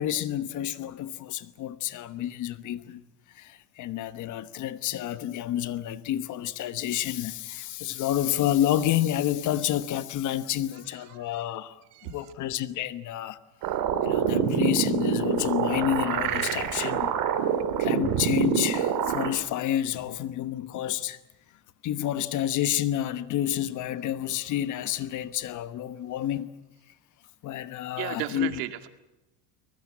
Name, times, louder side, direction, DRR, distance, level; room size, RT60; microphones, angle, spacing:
voice 1, 0.0-3.0 3.4-11.8 12.0-13.4 14.0-17.1 17.8-21.2 21.8-26.5 27.4-28.6, left 12 dB, 40° left, 1.2 m, -29 dB
sound 1, 13.6-19.3, right 8 dB, 45° right, 3.3 m, -26 dB
voice 2, 28.0-28.9, right 14 dB, 75° right, 2.3 m, -34 dB
23.5 x 20.5 x 8.6 m
supercardioid pair, 145°, 47 cm